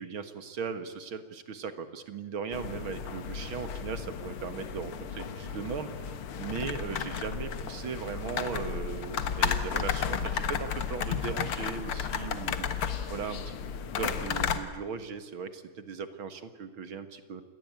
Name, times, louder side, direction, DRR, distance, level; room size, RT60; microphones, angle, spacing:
voice 1, 0.0-13.5 14.0-17.4, right 6 dB, 70° right, 9 dB, 2.5 m, -38 dB
sound 1, 2.5-14.6, left 7 dB, 90° left, 2.3 m, -33 dB
28.0 x 20.0 x 8.9 m, 1.4 s
omnidirectional pair, 2.3 m